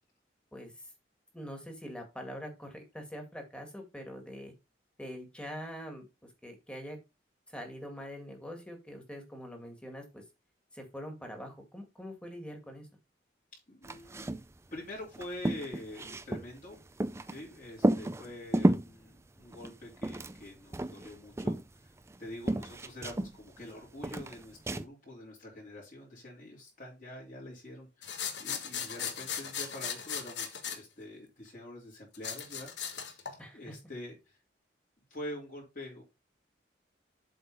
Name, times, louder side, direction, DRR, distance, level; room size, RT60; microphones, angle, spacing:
voice 1, 0.5-0.9 1.3-4.5 5.0-7.0 7.5-10.2 10.7-12.9 18.2-18.3 29.0-29.1 33.4-33.7, equal, 5° left, 3 dB, 2.0 m, -44 dB
voice 2, 13.7-14.4 14.7-16.8 17.3-32.7 33.0-34.4 35.1-36.0, left 1 dB, 45° left, -4 dB, 3.4 m, -46 dB
sound 1, 13.8-14.5 14.8-14.9 15.1-17.4 17.8-18.9 19.5-20.5 20.7-22.2 22.5-23.7 24.0-24.9, right 1 dB, 15° right, 0.4 m, -31 dB
sound 2, 28.0-30.8 32.1-33.4, left 8 dB, 75° left, 1.4 m, -37 dB
7.7 x 3.9 x 5.3 m, 0.26 s
head